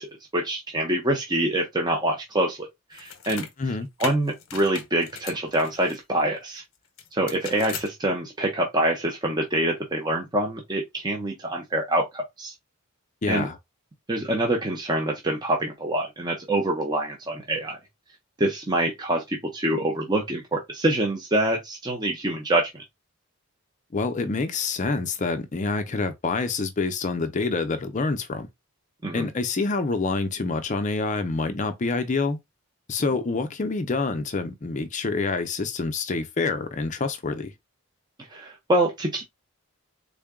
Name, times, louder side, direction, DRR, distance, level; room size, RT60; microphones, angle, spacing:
voice 1, 0.0-3.5 4.0-6.6 7.1-12.5 13.3-13.5 14.1-17.8 18.4-22.8 29.0-29.3 38.3-39.2, right 1 dB, 20° right, 0.6 m, -25 dB
sound 1, 2.9-3.5 4.0-6.0 7.0-7.9, left 7 dB, 65° left, 0.8 m, -38 dB
voice 2, 13.2-13.6 23.9-28.5 29.1-32.4 32.9-37.5, left 3 dB, 35° left, 0.4 m, -27 dB
3.7 x 2.2 x 3.5 m
head